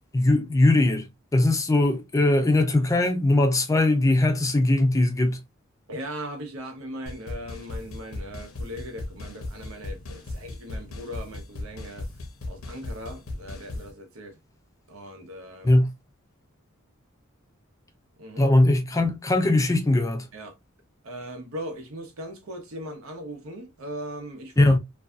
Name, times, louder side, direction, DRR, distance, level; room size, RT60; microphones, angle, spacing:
voice 1, 0.1-5.4 15.6-15.9 18.4-20.3 24.6-24.8, left 2 dB, 15° left, 0.4 m, -20 dB
voice 2, 5.9-12.1 12.5-14.4 14.9-15.8 18.2-18.5 20.3-20.6 21.0-24.8, equal, 80° right, 0.8 m, -39 dB
sound 1, 7.1-13.9, left 2 dB, 90° left, 0.7 m, -37 dB
2.6 x 2.3 x 2.2 m
head